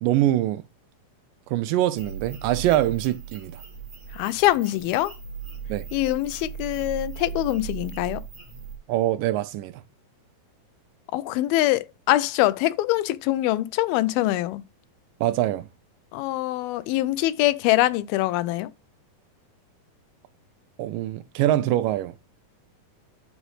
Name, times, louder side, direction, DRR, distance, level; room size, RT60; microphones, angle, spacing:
voice 1, 0.0-0.6 1.5-3.6 5.7-5.9 8.9-9.8 15.2-15.7 20.8-22.1, right 13 dB, 80° right, 2.1 m, -24 dB
sound 1, 2.0-8.8, right 7 dB, 15° right, 1.8 m, -38 dB
voice 2, 4.1-5.1 5.9-8.2 11.1-14.6 16.1-18.7, left 16 dB, 90° left, 2.5 m, -24 dB
12.5 x 5.1 x 3.2 m
omnidirectional pair, 4.2 m